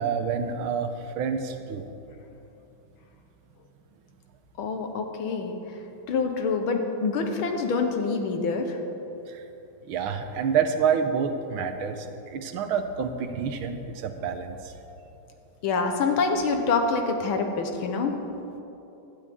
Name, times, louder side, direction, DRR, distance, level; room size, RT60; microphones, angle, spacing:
voice 1, 0.0-1.9 9.3-9.4 9.9-14.7, right 6 dB, 85° right, 7 dB, 1.7 m, -28 dB
voice 2, 4.6-5.5 6.1-8.8 15.6-18.2, left 4 dB, 90° left, 4 dB, 1.9 m, -26 dB
16.0 x 12.0 x 3.6 m, 3.0 s
omnidirectional pair, 2.2 m